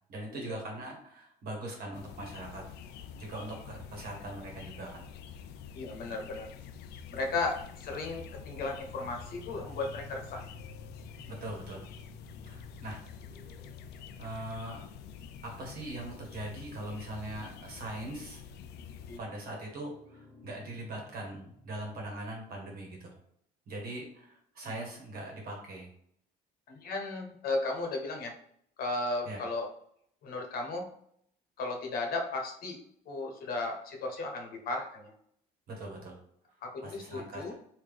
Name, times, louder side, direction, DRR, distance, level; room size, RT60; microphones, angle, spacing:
voice 1, 0.1-2.6 3.2-5.0 11.3-11.8 12.5-13.0 14.2-14.8 15.4-18.4 19.2-23.1 23.7-25.9 29.2-29.4 35.7-36.1 36.8-37.5, right 1 dB, 60° right, 0 dB, 1.3 m, -41 dB
sound 1, 1.9-19.2, left 7 dB, 75° left, 0.4 m, -47 dB
voice 2, 5.7-6.5 7.1-10.4 19.1-19.2 26.7-28.3 28.8-29.7 30.2-30.9 31.6-32.8 33.1-35.1 36.6-37.5, left 3 dB, 60° left, 2 dB, 0.9 m, -35 dB
sound 2, 8.3-22.9, left 2 dB, 5° left, 1.4 m, -55 dB
3.7 x 2.7 x 3.3 m, 0.68 s
cardioid pair, 110°, 17 cm